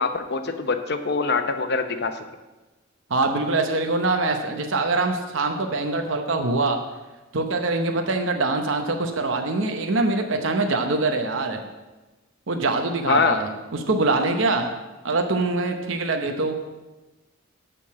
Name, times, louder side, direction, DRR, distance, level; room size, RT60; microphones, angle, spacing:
voice 1, 0.0-2.1 13.0-13.4, left 4 dB, 55° left, 8 dB, 0.8 m, -23 dB
voice 2, 3.1-6.8 7.3-11.6 12.5-14.8 15.0-16.6, right 3 dB, 75° right, 4 dB, 0.9 m, -24 dB
11.0 x 3.8 x 7.4 m, 1.1 s
head